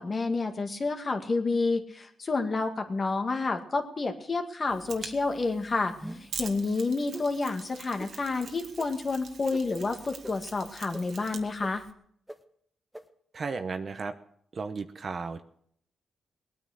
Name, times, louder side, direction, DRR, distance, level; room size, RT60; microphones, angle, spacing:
voice 1, 0.0-5.9 6.4-11.8, left 3 dB, 40° left, 5 dB, 2.0 m, -29 dB
Mechanisms, 4.7-11.9, right 6 dB, 65° right, 1.6 m, -45 dB
sound 1, 6.0-6.4 7.1-7.3 8.0-8.1 8.8-8.9 9.5-9.6 10.2-10.3 10.9-11.0 11.6-11.7 12.3-12.4 12.9-13.0, right 1 dB, 5° right, 1.4 m, -40 dB
voice 2, 13.3-14.1 14.5-15.4, right 4 dB, 50° right, 9 dB, 0.9 m, -34 dB
19.0 x 9.5 x 6.6 m, 0.67 s
cardioid pair, 75°, 0 cm